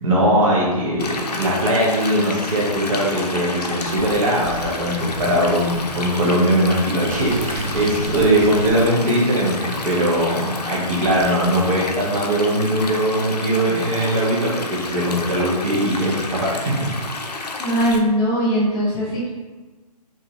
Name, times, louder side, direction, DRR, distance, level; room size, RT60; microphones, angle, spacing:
voice 1, 0.0-16.7, right 1 dB, 55° right, -5 dB, 1.1 m, -20 dB
Stream, 1.0-18.0, left 3 dB, 80° left, 0.5 m, -30 dB
Water / Sink (filling or washing), 7.1-8.8, right 1 dB, 10° right, 0.4 m, -30 dB
voice 2, 17.6-19.3, equal, 20° left, -7 dB, 1.1 m, -20 dB
4.0 x 2.7 x 2.4 m, 1.3 s
figure-of-eight pair, 130°, 20 cm